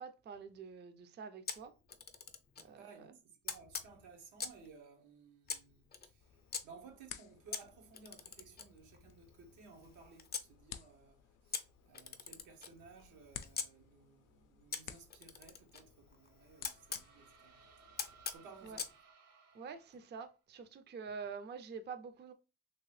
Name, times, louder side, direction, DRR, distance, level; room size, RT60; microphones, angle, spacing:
voice 1, 0.0-1.7 2.7-3.1 18.6-18.8 19.5-22.3, right 5 dB, 35° right, 0.5 m, -47 dB
Camera, 1.5-2.7 3.5-4.7 5.5-6.6 7.5-10.5 11.5-13.7 14.7-17.1 18.0-19.0, left 6 dB, 35° left, 0.5 m, -44 dB
voice 2, 2.6-3.2 3.4-5.9 6.6-11.2 11.9-17.6 18.3-18.8, right 5 dB, 85° right, 0.9 m, -58 dB
sound 1, 6.2-18.4, left 10 dB, 85° left, 0.5 m, -56 dB
sound 2, 16.1-20.4, right 6 dB, 55° right, 0.8 m, -63 dB
3.0 x 2.9 x 3.1 m
cardioid pair, 90°, 30 cm